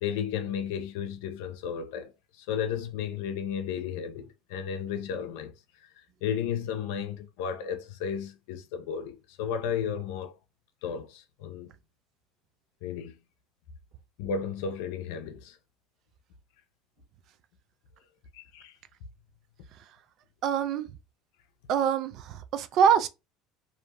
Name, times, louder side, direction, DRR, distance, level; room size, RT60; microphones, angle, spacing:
voice 1, 0.0-2.1 2.4-5.5 6.2-10.3 10.8-11.7 12.8-13.1 14.2-15.6 18.3-18.7, left 7 dB, 70° left, 0.5 m, -33 dB
voice 2, 20.4-20.9 21.7-23.1, right 7 dB, 55° right, 0.4 m, -24 dB
2.5 x 2.1 x 2.9 m
hypercardioid pair, 75°, 0 cm